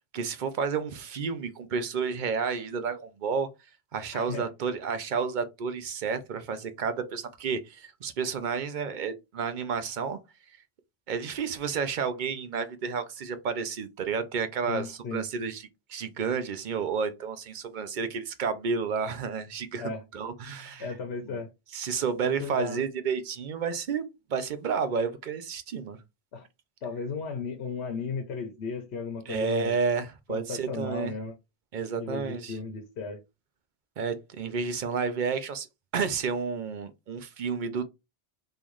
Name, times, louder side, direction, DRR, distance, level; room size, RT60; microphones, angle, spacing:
voice 1, 0.1-3.5 3.9-10.2 11.1-20.9 21.2-21.4 21.7-26.0 29.3-31.1 31.7-32.6 34.0-35.7 35.9-37.9, right 5 dB, 55° right, 0.7 m, -31 dB
voice 2, 4.1-4.5 14.7-15.2 19.8-20.0 20.8-21.5 22.2-22.8 26.3-26.5 26.8-29.8 30.3-31.3 32.0-33.2, left 4 dB, 75° left, 1.0 m, -35 dB
3.8 x 2.5 x 3.0 m
omnidirectional pair, 1.1 m